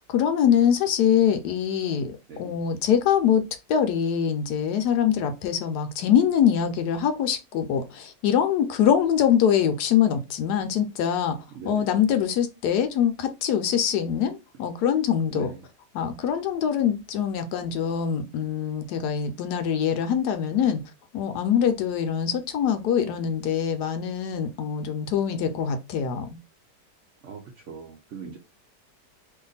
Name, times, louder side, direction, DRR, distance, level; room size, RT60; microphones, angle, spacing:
voice 1, 0.1-3.4 3.7-11.4 11.6-15.5 15.9-20.8 21.1-26.3, left 8 dB, 75° left, 1.1 m, -23 dB
voice 2, 11.5-11.9 15.3-15.5 27.2-27.4 27.7-28.4, right 6 dB, 65° right, 0.7 m, -40 dB
2.8 x 2.5 x 3.9 m
omnidirectional pair, 1.8 m